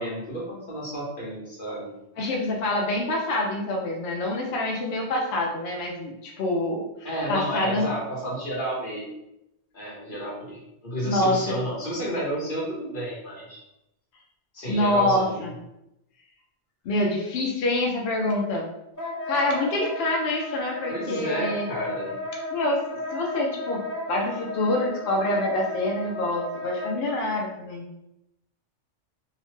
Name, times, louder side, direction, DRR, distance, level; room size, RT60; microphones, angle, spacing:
voice 1, 0.0-1.9 7.0-9.2 9.7-13.6 14.5-15.4 20.9-22.1, right 1 dB, 50° left, -6 dB, 1.1 m, -31 dB
voice 2, 2.2-6.9 7.3-7.9 11.0-11.6 14.7-15.5 16.8-18.7 19.3-21.7 22.5-22.8 23.1-23.8 24.1-27.8, left 1 dB, 65° left, 0 dB, 0.8 m, -26 dB
Wind instrument woodwind instrument, 19.0-27.2, left 1 dB, 25° left, 0.4 m, -34 dB
2.8 x 2.1 x 3.0 m, 0.85 s
omnidirectional pair, 1.2 m